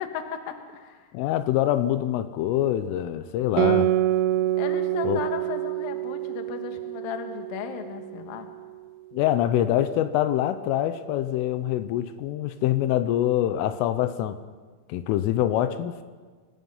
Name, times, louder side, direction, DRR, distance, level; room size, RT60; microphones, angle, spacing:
voice 1, 0.0-1.0 4.6-8.5, left 8 dB, 60° left, 6 dB, 2.7 m, -35 dB
voice 2, 1.1-3.9 5.0-5.2 9.1-14.4 14.9-16.0, left 12 dB, 85° left, 11 dB, 3.4 m, -25 dB
Guitar, 3.6-8.5, right 14 dB, 90° right, 2.3 m, -26 dB
26.0 x 19.0 x 5.6 m, 1.4 s
omnidirectional pair, 5.7 m